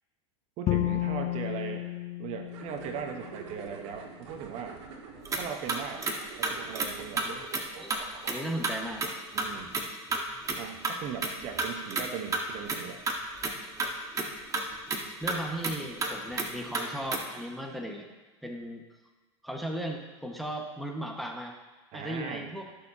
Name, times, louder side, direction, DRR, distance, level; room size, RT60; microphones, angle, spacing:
voice 1, 0.6-1.9 2.2-4.8 5.3-6.1 6.4-7.3 9.3-9.8 10.5-13.0 21.9-22.5, right 7 dB, 45° right, 5 dB, 1.2 m, -39 dB
Bowed string instrument, 0.7-3.8, left 15 dB, 35° left, 0.7 m, -32 dB
sound 1, 2.5-8.7, right 5 dB, 60° right, 2.0 m, -46 dB
sound 2, 5.2-5.4 5.7-6.2 6.4-6.9 7.2-7.3 7.5-7.6 7.9-8.0 8.3-8.7 9.0-9.1 9.4-9.5 9.7-9.8 10.1-10.2 10.5-10.6 10.8-10.9 11.2-12.0 12.3-12.4 12.7-12.8 13.1-13.9 14.2-14.3 14.5-14.6 14.9-15.0 15.3-15.7 16.0-16.1 16.4-17.2, right 3 dB, 20° right, 1.6 m, -30 dB
voice 2, 7.1-7.4 7.8-7.9 8.3-9.1 15.2-18.1 18.4-18.8 19.4-21.5 21.9-22.7, right 1 dB, ahead, 1 dB, 1.5 m, -36 dB
20.0 x 6.7 x 2.9 m, 1.3 s
hypercardioid pair, 100°, 16 cm